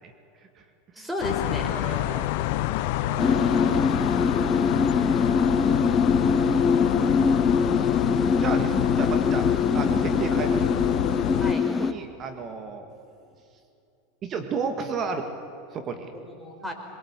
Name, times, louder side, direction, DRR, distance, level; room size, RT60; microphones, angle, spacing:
voice 1, 1.0-2.3 11.4-11.6 16.2-16.7, left 1 dB, 5° right, 1 dB, 4.7 m, -34 dB
sound 1, 1.2-11.5, left 15 dB, 60° left, 0.6 m, -28 dB
voice 2, 1.7-2.3 3.0-3.8 4.1-4.5 4.8-4.9 5.2-5.8 7.0-7.8 8.4-9.5 9.7-10.9 11.8-12.9 14.2-15.3 15.7-16.1, right 5 dB, 35° right, 6 dB, 2.0 m, -34 dB
sound 2, 3.2-11.9, left 5 dB, 25° left, 1.1 m, -23 dB
22.0 x 22.0 x 8.4 m, 2.7 s
hypercardioid pair, 90°, 0 cm